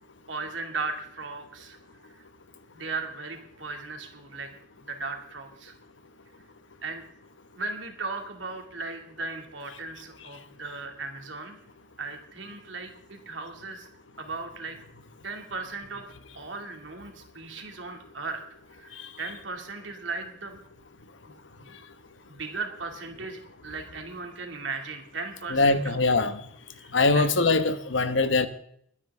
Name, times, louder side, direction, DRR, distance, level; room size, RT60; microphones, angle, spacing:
voice 1, 0.3-1.8 2.7-4.6 4.9-5.7 6.8-7.1 7.6-11.6 12.0-13.9 14.2-14.8 15.2-16.1 16.3-18.4 18.7-20.6 21.3-21.7 22.3-26.0 26.8-27.3, right 3 dB, 85° right, 2.5 m, -37 dB
voice 2, 25.5-26.4 26.9-28.5, left 3 dB, 90° left, 1.2 m, -22 dB
22.0 x 9.9 x 3.6 m
head